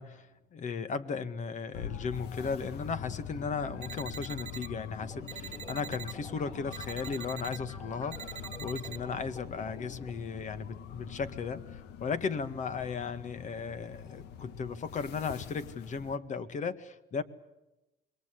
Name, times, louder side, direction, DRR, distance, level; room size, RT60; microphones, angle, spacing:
voice 1, 0.0-17.2, left 5 dB, 45° left, 12 dB, 1.9 m, -36 dB
sound 1, 1.7-16.2, left 8 dB, 80° left, 1.6 m, -44 dB
sound 2, 3.8-4.7 5.3-6.1 6.7-7.6 8.1-9.0, right 9 dB, 45° right, 1.1 m, -44 dB
sound 3, 5.0-10.1, left 2 dB, 30° left, 4.7 m, -50 dB
27.5 x 22.5 x 8.4 m, 0.96 s
cardioid pair, 110°, 17 cm